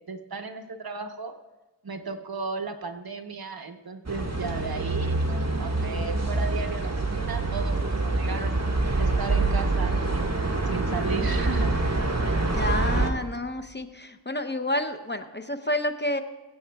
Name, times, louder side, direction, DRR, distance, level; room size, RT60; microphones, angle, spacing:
voice 1, 0.1-1.4 1.8-8.6 9.0-11.7, right 4 dB, 55° right, 7 dB, 1.0 m, -35 dB
sound 1, 4.1-13.1, right 2 dB, 35° right, 1.5 m, -26 dB
voice 2, 12.5-16.2, left 1 dB, 25° left, 8 dB, 0.7 m, -29 dB
21.5 x 8.5 x 2.3 m, 1.1 s
wide cardioid pair, 50°, 45 cm